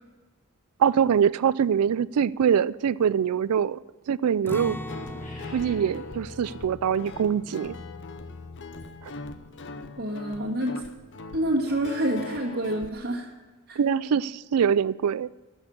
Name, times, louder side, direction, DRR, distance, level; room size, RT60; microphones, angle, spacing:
voice 1, 0.8-3.8 4.1-4.8 5.5-7.7 9.0-9.1 13.8-15.3, right 8 dB, 80° right, 19 dB, 0.4 m, -23 dB
Acoustic guitar, 4.5-10.4 10.7-10.8 11.3-11.8, left 1 dB, 10° left, 0.4 m, -42 dB
Guitar, 4.6-12.9, left 3 dB, 55° left, 0.8 m, -41 dB
sound 1, 5.0-6.6, left 1 dB, 35° left, 2.0 m, -51 dB
voice 2, 10.0-10.8 11.3-13.3 13.7-13.8, right 1 dB, 50° right, -4 dB, 1.7 m, -27 dB
13.5 x 6.4 x 8.7 m, 1.3 s
head